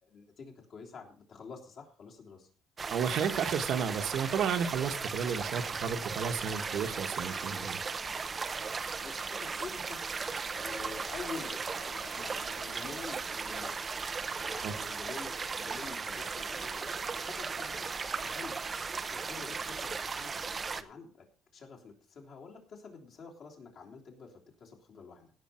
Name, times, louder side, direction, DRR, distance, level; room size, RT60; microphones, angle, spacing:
voice 1, 0.0-2.5 9.0-10.0 10.2-13.9 14.5-17.9 18.2-21.2 21.5-25.3, left 5 dB, 45° left, 0 dB, 3.3 m, -48 dB
sound 1, 2.8-20.8, right 5 dB, 25° right, 0.7 m, -37 dB
voice 2, 2.9-7.8 14.6-14.7, right 7 dB, 55° right, 6 dB, 1.3 m, -32 dB
17.0 x 6.8 x 4.3 m, 0.41 s
cardioid pair, 155°, 0 cm